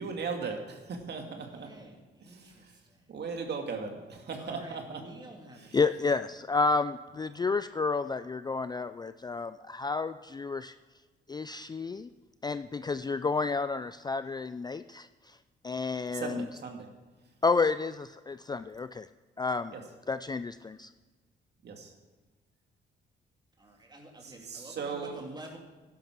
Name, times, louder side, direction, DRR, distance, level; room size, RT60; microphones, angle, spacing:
voice 1, 0.0-1.7 2.2-2.7 3.1-5.0 5.6-5.8 16.1-16.9 19.7-19.8 21.6-21.9 24.2-25.2, right 5 dB, 55° right, 3 dB, 2.3 m, -38 dB
voice 2, 1.2-3.1 4.4-6.3 23.6-25.6, right 1 dB, 20° right, 1 dB, 3.0 m, -49 dB
voice 3, 5.7-10.7 11.3-12.1 12.4-15.4 15.6-16.5 17.4-19.1 19.4-19.7 20.1-20.9, left 4 dB, 20° left, 12 dB, 0.4 m, -30 dB
12.0 x 10.5 x 6.1 m, 1.3 s
cardioid pair, 90°, 20 cm